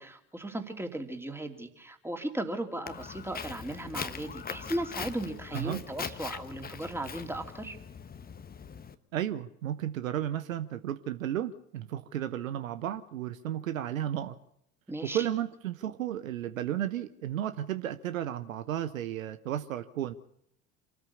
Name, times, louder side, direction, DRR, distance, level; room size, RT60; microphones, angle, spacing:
voice 1, 0.0-7.8 14.9-15.3, right 1 dB, 5° right, 5 dB, 3.0 m, -36 dB
Walk footsteps, 2.9-8.9, left 6 dB, 20° left, 1.3 m, -41 dB
voice 2, 9.1-14.4 15.0-20.1, right 11 dB, 70° right, 11 dB, 1.1 m, -33 dB
27.0 x 14.0 x 7.0 m, 0.74 s
figure-of-eight pair, 65°, 41 cm